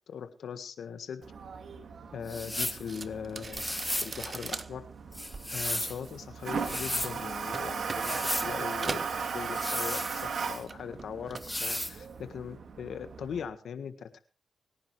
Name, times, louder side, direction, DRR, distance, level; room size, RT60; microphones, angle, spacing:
voice 1, 0.1-1.2 2.1-4.8 5.5-14.2, left 7 dB, 80° left, 10 dB, 1.6 m, -40 dB
Toilet flush, 1.2-13.5, right 5 dB, 70° right, 2.3 m, -38 dB
sound 1, 2.3-2.8 3.5-4.2 5.1-6.0 6.5-7.1 7.9-8.5 9.5-10.5 11.4-12.0, left 1 dB, 15° left, 1.7 m, -34 dB
sound 2, 2.9-10.1 10.3-11.6 11.9-12.3, right 4 dB, 45° right, 1.1 m, -42 dB
24.5 x 10.5 x 3.3 m, 0.36 s
supercardioid pair, 50°, 0 cm